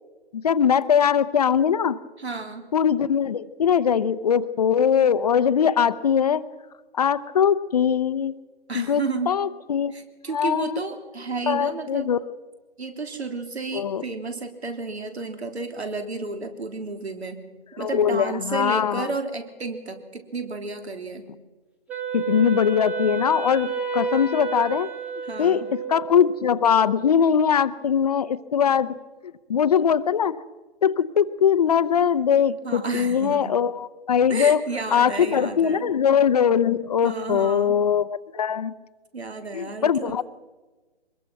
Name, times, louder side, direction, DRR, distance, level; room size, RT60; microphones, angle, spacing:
voice 1, 0.4-2.0 2.7-6.4 6.9-8.4 8.7-9.9 10.3-10.8 11.5-12.2 13.7-14.0 17.8-19.1 22.1-24.9 25.4-25.6 25.9-28.9 29.2-30.4 30.8-34.6 34.9-38.7 39.5-40.2, left 8 dB, 40° left, 15 dB, 0.7 m, -21 dB
voice 2, 2.2-2.6 8.7-9.4 9.9-12.1 12.8-17.4 17.8-21.3 25.3-25.7 32.6-33.5 34.3-35.9 37.0-37.8 39.1-40.2, right 3 dB, 80° right, 6 dB, 3.5 m, -32 dB
Wind instrument woodwind instrument, 21.9-26.2, right 5 dB, 5° right, 1.3 m, -30 dB
23.0 x 21.5 x 5.9 m, 1.2 s
hypercardioid pair, 150°, 32 cm